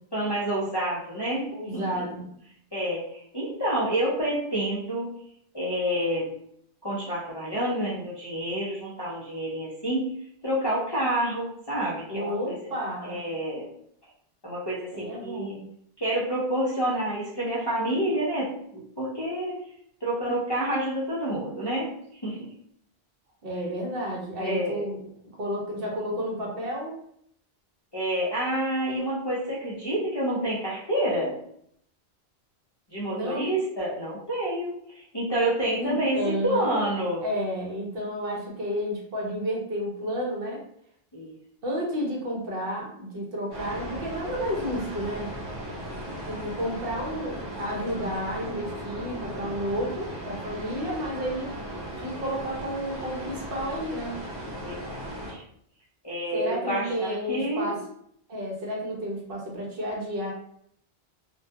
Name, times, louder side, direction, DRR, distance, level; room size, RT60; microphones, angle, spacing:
voice 1, 0.1-1.8 2.7-5.1 5.5-6.3 6.8-10.1 10.4-12.7 13.0-13.7 14.4-15.6 16.0-19.6 20.0-21.9 22.2-22.5 24.4-24.8 27.9-31.3 32.9-37.2 41.1-41.3 54.6-55.4 56.0-57.8, right 1 dB, 35° left, -8 dB, 0.4 m, -28 dB
voice 2, 1.5-2.3 12.1-13.2 14.9-15.6 23.4-25.0 25.4-27.0 33.1-33.5 35.8-36.9 37.2-40.6 41.6-45.3 46.2-51.5 52.0-54.2 56.3-57.8 58.3-60.3, equal, 65° right, -2 dB, 0.9 m, -31 dB
sound 1, 43.5-55.3, equal, 25° right, 0.7 m, -37 dB
2.2 x 2.2 x 2.7 m, 0.69 s
omnidirectional pair, 1.1 m